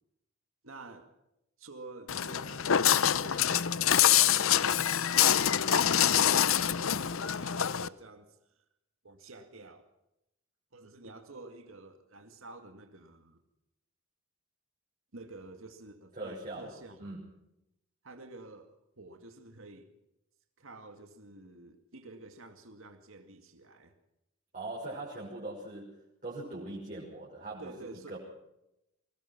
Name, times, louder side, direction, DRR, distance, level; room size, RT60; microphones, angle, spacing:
voice 1, 0.6-1.2 1.6-5.4 5.9-8.6 9.0-9.9 10.7-13.4 15.1-17.1 18.0-19.9 20.6-23.9 27.6-28.2, right 2 dB, 65° right, 6 dB, 2.2 m, -50 dB
Walk footsteps, 2.1-7.9, left 10 dB, 65° left, 0.7 m, -25 dB
voice 2, 16.2-16.7 17.0-17.2 24.5-25.9 26.2-28.2, right 2 dB, 40° right, -5 dB, 5.8 m, -41 dB
23.0 x 19.0 x 5.9 m, 0.85 s
head